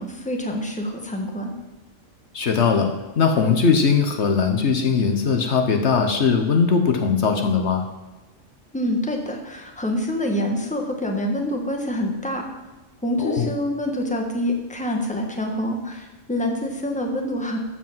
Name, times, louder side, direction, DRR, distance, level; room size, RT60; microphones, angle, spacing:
voice 1, 0.0-1.5 8.7-12.4 13.0-17.6, left 1 dB, 5° left, 2 dB, 1.4 m, -26 dB
voice 2, 2.3-7.8 13.2-13.5, left 5 dB, 65° left, 4 dB, 1.2 m, -20 dB
14.0 x 5.1 x 7.3 m, 1.1 s
omnidirectional pair, 1.2 m